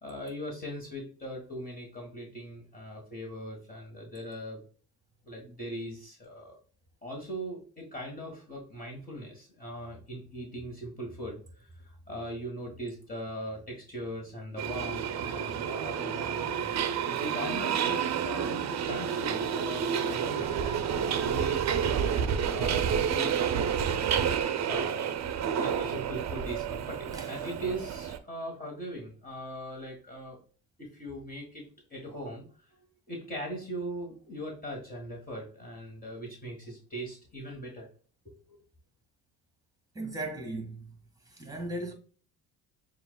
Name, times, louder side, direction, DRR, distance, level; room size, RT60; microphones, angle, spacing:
voice 1, 0.0-4.6 5.2-6.6 7.0-21.6 22.5-23.4 24.6-30.4 30.8-37.9 38.2-38.3, equal, 20° left, 1.4 m, -40 dB
Subway metro underground, 14.6-28.2, right 8 dB, 45° right, 0.6 m, -30 dB
voice 2, 39.9-40.9 41.3-41.9, right 2 dB, 10° right, 1.8 m, -37 dB
6.9 x 2.5 x 2.2 m
cardioid pair, 85°, 38 cm